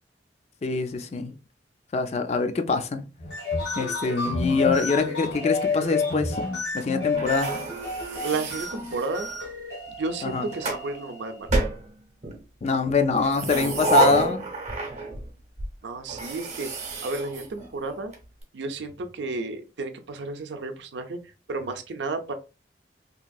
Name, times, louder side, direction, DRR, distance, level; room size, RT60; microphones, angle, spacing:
voice 1, 0.6-1.3 1.9-3.0 3.8-6.5 6.7-7.5 10.2-10.5 12.6-14.4, left 4 dB, 35° left, 0.3 m, -24 dB
sound 1, 3.2-11.5, left 3 dB, 85° left, 1.7 m, -30 dB
sound 2, 7.2-9.4 10.2-10.9 11.5-12.4 13.1-15.3 15.6-15.7 16.1-18.1, right 2 dB, 40° right, 0.7 m, -28 dB
voice 2, 8.2-9.3 10.0-11.5 15.8-16.7 17.0-18.1 18.5-21.2 21.5-22.3, right 3 dB, 80° right, 0.5 m, -32 dB
2.9 x 2.5 x 2.3 m
head